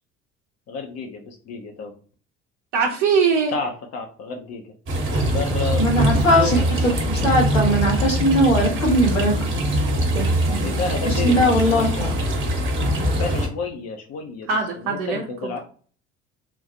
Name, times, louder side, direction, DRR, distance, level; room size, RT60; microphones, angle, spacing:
voice 1, 0.7-1.9 3.5-4.6 5.2-5.8 6.4-6.7 10.4-12.1 13.1-14.5 14.8-15.6, left 4 dB, 40° left, 3 dB, 0.7 m, -30 dB
voice 2, 2.7-3.5 6.1-6.2 14.5-15.6, right 5 dB, 50° right, -2 dB, 0.7 m, -22 dB
sound 1, 4.9-13.5, equal, 35° right, 1.1 m, -22 dB
voice 3, 5.8-9.6 10.1-10.7 11.1-12.1, equal, 85° left, -2 dB, 1.2 m, -20 dB
3.7 x 2.4 x 2.7 m, 0.43 s
figure-of-eight pair, 60°, 37 cm